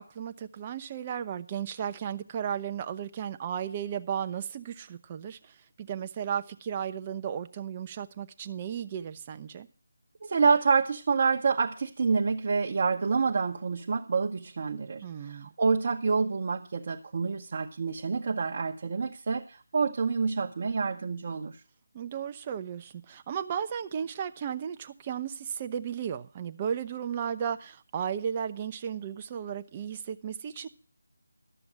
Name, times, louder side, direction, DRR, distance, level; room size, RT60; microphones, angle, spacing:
voice 1, 0.0-9.7 15.0-15.5 21.9-30.7, right 8 dB, 25° right, 0.8 m, -35 dB
voice 2, 10.2-21.6, right 5 dB, 45° right, 1.0 m, -27 dB
12.0 x 7.0 x 7.5 m
figure-of-eight pair, 160°, 0 cm